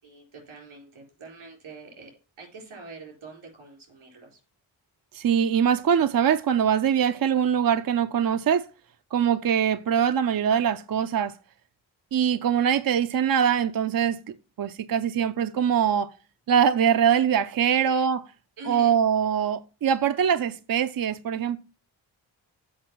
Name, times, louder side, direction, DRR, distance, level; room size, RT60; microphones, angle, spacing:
voice 1, 0.0-2.1 2.4-4.4 17.7-18.1 18.6-19.0, right 3 dB, 85° right, 4.2 m, -44 dB
voice 2, 5.1-8.7 9.1-11.3 12.1-14.2 14.6-16.1 16.5-18.2 18.7-21.6, right 8 dB, 45° right, 0.6 m, -23 dB
7.4 x 5.0 x 6.0 m
supercardioid pair, 45°, 47 cm